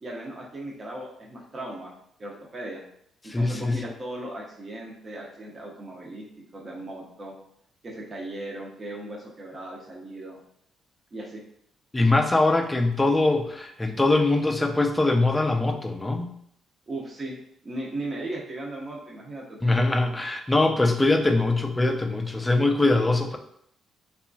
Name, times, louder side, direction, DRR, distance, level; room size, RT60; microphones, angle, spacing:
voice 1, 0.0-1.9 2.2-2.8 3.4-6.3 6.5-7.3 7.8-10.4 11.1-11.4 16.9-17.4 17.6-19.7, right 1 dB, 35° right, -2 dB, 0.6 m, -37 dB
voice 2, 3.3-3.8 11.9-16.3 19.6-23.4, left 2 dB, 15° left, 5 dB, 0.3 m, -22 dB
2.8 x 2.3 x 2.5 m, 0.72 s
cardioid pair, 90°, 0 cm